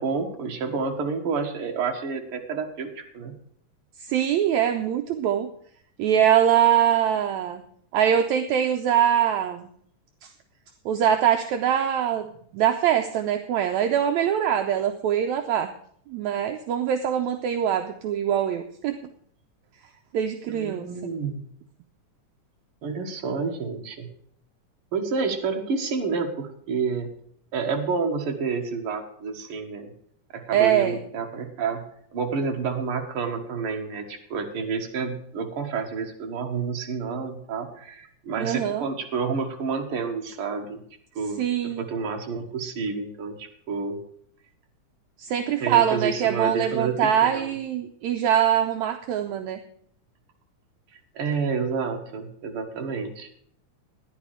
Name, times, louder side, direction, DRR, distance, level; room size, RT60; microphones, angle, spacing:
voice 1, 0.0-3.4 20.5-21.4 22.8-24.1 24.9-27.1 27.5-29.9 30.3-31.9 32.1-40.8 41.2-44.0 45.6-47.5 51.1-53.3, right 5 dB, 50° right, 3 dB, 2.2 m, -29 dB
voice 2, 4.0-5.5 6.0-7.6 7.9-9.7 10.2-10.3 10.9-12.3 12.5-15.7 16.1-19.0 20.1-20.9 30.5-31.0 38.4-38.9 41.4-41.9 45.2-49.6, right 9 dB, 75° right, 6 dB, 1.9 m, -23 dB
13.5 x 10.5 x 4.9 m, 0.65 s
omnidirectional pair, 3.5 m